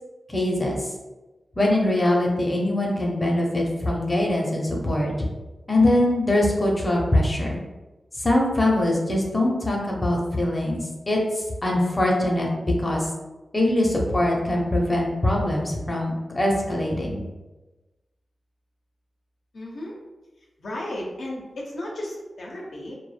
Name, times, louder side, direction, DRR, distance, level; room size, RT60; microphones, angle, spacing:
voice 1, 0.3-0.8 1.6-5.1 5.7-7.6 8.2-13.1 13.5-17.2, left 1 dB, 25° left, -2 dB, 0.6 m, -22 dB
voice 2, 19.5-20.0 20.6-22.9, left 1 dB, 75° left, -2 dB, 0.5 m, -34 dB
2.1 x 2.1 x 3.2 m, 1.1 s
cardioid pair, 65°, 0 cm